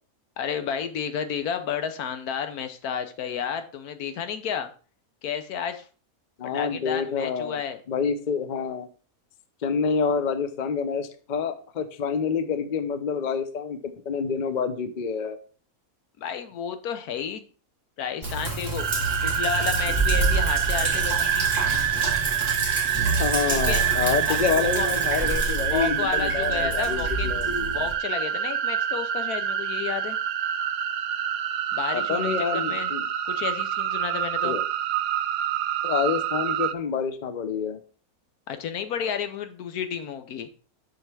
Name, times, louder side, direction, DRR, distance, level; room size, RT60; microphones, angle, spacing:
voice 1, 0.4-4.7 5.2-5.8 6.5-7.8 16.2-17.4 18.0-18.9 19.2-21.5 23.5-23.8 24.3-24.9 25.7-27.4 27.7-30.2 31.7-32.9 33.3-34.6 38.5-40.5, left 8 dB, 85° left, 9 dB, 1.3 m, -31 dB
voice 2, 6.4-7.6 7.9-8.9 9.6-15.4 23.2-27.8 31.9-33.0 34.4-34.6 35.8-37.8, left 6 dB, 45° left, 10 dB, 0.6 m, -27 dB
Sink (filling or washing), 18.2-27.9, right 2 dB, 30° right, 1.9 m, -28 dB
sound 1, 18.8-36.7, right 10 dB, 75° right, 1.0 m, -27 dB
7.3 x 5.7 x 3.4 m, 0.40 s
omnidirectional pair, 1.6 m